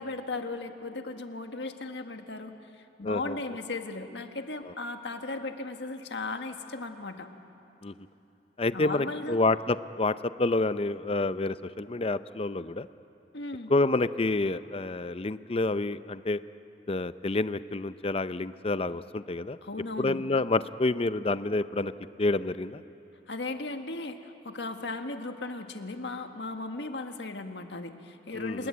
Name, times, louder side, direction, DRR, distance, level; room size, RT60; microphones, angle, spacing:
voice 1, 0.0-7.3 8.7-9.4 13.3-13.7 19.6-20.2 23.3-28.7, left 3 dB, 75° left, 6 dB, 1.6 m, -36 dB
voice 2, 3.0-3.4 7.8-7.9 8.6-12.9 13.7-16.4 16.9-19.6 20.0-21.9 22.2-22.8 28.3-28.7, left 2 dB, 35° left, 13 dB, 0.6 m, -28 dB
28.0 x 20.5 x 8.7 m, 2.9 s
head